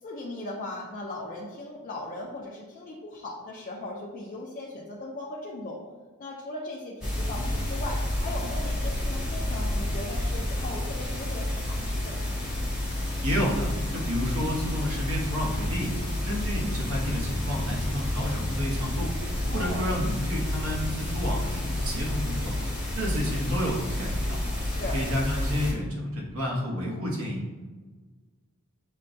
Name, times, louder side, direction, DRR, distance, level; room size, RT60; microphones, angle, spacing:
voice 1, 0.0-5.8 6.2-12.2 19.4-19.9 24.6-25.0, left 2 dB, 35° left, -4 dB, 0.4 m, -38 dB
sound 1, 7.0-25.7, left 1 dB, 5° right, 0.9 m, -30 dB
voice 2, 13.2-15.9 16.3-19.1 19.5-22.5 23.0-24.4 24.9-27.4, equal, 70° right, -2 dB, 0.9 m, -30 dB
6.4 x 2.2 x 2.6 m, 1.4 s
head